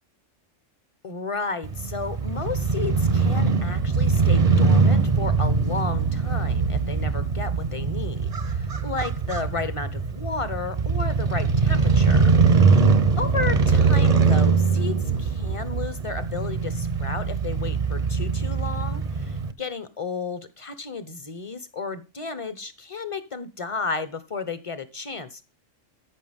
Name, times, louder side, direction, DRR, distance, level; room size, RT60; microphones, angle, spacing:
voice 1, 1.0-12.3 13.2-25.4, left 4 dB, 25° left, 12 dB, 1.1 m, -33 dB
Crow / Motorcycle, 1.6-19.5, right 4 dB, 35° right, 0.8 m, -22 dB
14.0 x 6.1 x 3.6 m, 0.31 s
omnidirectional pair, 1.3 m